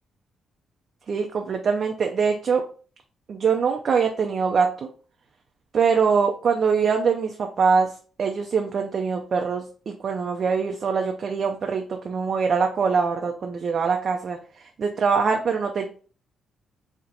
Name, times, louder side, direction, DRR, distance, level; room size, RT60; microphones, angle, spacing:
voice 1, 1.1-2.6 3.3-4.7 5.7-7.9 8.2-14.4 14.8-15.9, right 5 dB, 55° right, 3 dB, 0.4 m, -23 dB
2.7 x 2.1 x 3.9 m, 0.39 s
hypercardioid pair, 45°, 0 cm